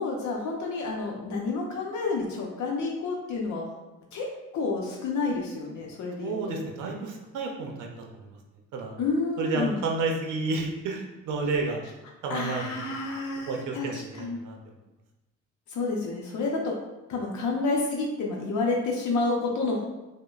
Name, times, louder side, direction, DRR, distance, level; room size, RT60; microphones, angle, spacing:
voice 1, 0.0-3.7 4.1-4.3 4.5-6.7 9.0-9.8 12.3-14.4 15.7-16.7 17.1-19.8, left 3 dB, 70° left, -1 dB, 0.7 m, -29 dB
voice 2, 6.2-8.4 8.7-9.0 9.4-11.8 12.2-12.8 13.5-14.6, right 3 dB, 80° right, 1 dB, 0.6 m, -31 dB
5.0 x 2.2 x 2.3 m, 1.0 s
cardioid pair, 90°, 30 cm